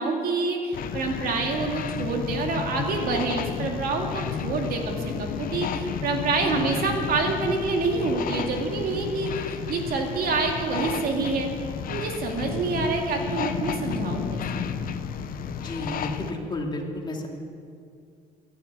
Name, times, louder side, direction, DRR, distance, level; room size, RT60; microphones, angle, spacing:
voice 1, 0.0-11.5 11.9-14.6, right 3 dB, 60° right, 2 dB, 2.4 m, -27 dB
sound 1, 0.7-16.3, left 7 dB, 55° left, 0.9 m, -32 dB
voice 2, 6.4-7.1 15.6-17.3, left 2 dB, 25° left, 1 dB, 2.5 m, -32 dB
14.5 x 10.5 x 8.7 m, 2.3 s
cardioid pair, 110°, 17 cm